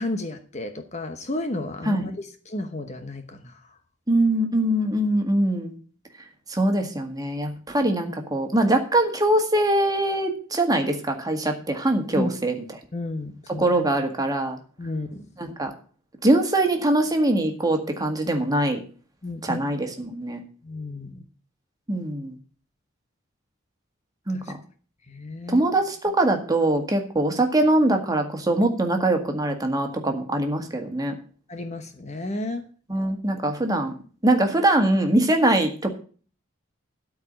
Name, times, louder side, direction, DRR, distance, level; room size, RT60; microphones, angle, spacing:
voice 1, 0.0-3.6 12.2-12.4 12.9-13.7 14.8-15.3 19.2-19.6 20.6-21.2 24.3-24.5 25.1-25.6 31.5-32.7, left 2 dB, 35° left, 7 dB, 1.0 m, -32 dB
voice 2, 4.1-5.7 6.5-12.5 13.5-14.6 15.4-15.7 16.2-18.8 19.4-20.4 21.9-22.4 24.3-24.6 25.5-31.1 32.9-33.9 34.2-35.9, right 1 dB, 20° right, 4 dB, 1.8 m, -22 dB
13.0 x 4.8 x 8.7 m, 0.41 s
head